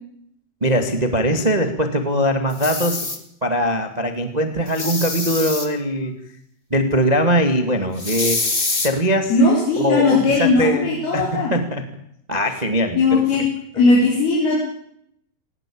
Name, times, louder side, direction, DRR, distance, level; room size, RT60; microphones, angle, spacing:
voice 1, 0.6-3.1 3.4-6.2 6.7-8.5 8.8-9.3 9.8-11.9 12.3-13.2, equal, 20° right, 6 dB, 1.1 m, -21 dB
sound 1, 2.5-3.2 4.7-5.7 8.0-8.9, left 3 dB, 20° left, 1.6 m, -25 dB
voice 2, 9.3-11.5 13.0-13.5 13.8-14.6, left 3 dB, 75° left, -3 dB, 6.7 m, -17 dB
21.0 x 19.5 x 8.7 m, 0.72 s
omnidirectional pair, 4.5 m